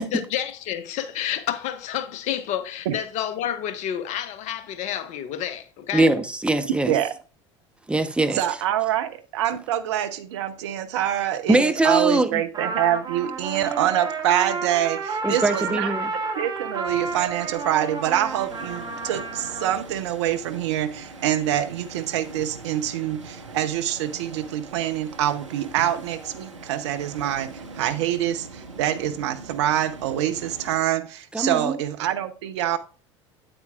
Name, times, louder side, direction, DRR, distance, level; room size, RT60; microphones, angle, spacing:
voice 1, 0.0-6.2, left 10 dB, 50° left, 1.0 m, -29 dB
voice 2, 5.9-6.9 7.9-8.4 11.5-12.4 15.2-16.1 31.3-31.8, right 2 dB, 5° right, 0.9 m, -21 dB
voice 3, 8.3-15.9 16.4-32.8, right 11 dB, 70° right, 0.7 m, -25 dB
Trumpet, 12.5-19.8, right 4 dB, 25° right, 1.9 m, -31 dB
sound 1, 16.8-30.8, right 3 dB, 90° right, 1.0 m, -42 dB
8.5 x 8.5 x 2.4 m
figure-of-eight pair, 75°, 15 cm